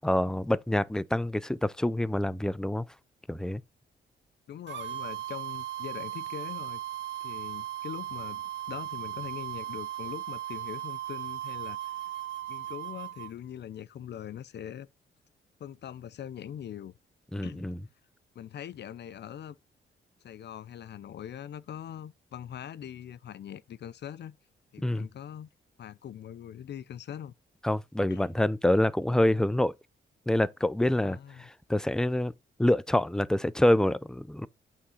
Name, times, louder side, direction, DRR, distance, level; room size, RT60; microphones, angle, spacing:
voice 1, 0.0-2.9 3.3-3.6 17.3-17.8 24.8-25.1 27.6-29.7 30.3-32.3 32.6-34.5, left 1 dB, 5° left, 0.4 m, -26 dB
voice 2, 4.5-6.8 7.2-12.1 12.5-14.9 15.6-16.9 17.4-17.7 18.3-19.6 20.2-24.4 24.7-25.5 25.8-27.3 28.1-28.3 30.9-31.5, left 10 dB, 60° left, 0.6 m, -42 dB
sound 1, 4.7-13.3, right 13 dB, 70° right, 0.8 m, -37 dB
8.6 x 3.6 x 5.6 m
cardioid pair, 90°, 19 cm